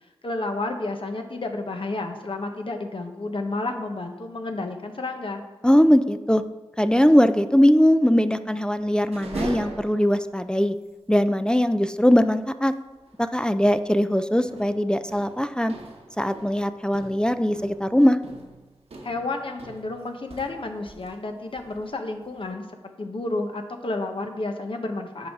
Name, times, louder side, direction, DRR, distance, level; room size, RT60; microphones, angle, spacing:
voice 1, 0.2-5.4 19.0-22.6 23.0-25.3, left 2 dB, 55° left, 5 dB, 0.9 m, -31 dB
voice 2, 5.6-6.4 6.8-10.8 11.1-12.7 13.2-15.7 16.2-18.2, equal, 10° left, 11 dB, 0.4 m, -20 dB
sound 1, 9.1-10.4 10.8-10.9 11.2-11.3 13.0-13.3 13.6-13.9 14.5-21.2 21.5-22.5, right 2 dB, 75° right, 1.1 m, -40 dB
10.5 x 3.9 x 3.6 m, 1.2 s
cardioid pair, 40°, 10 cm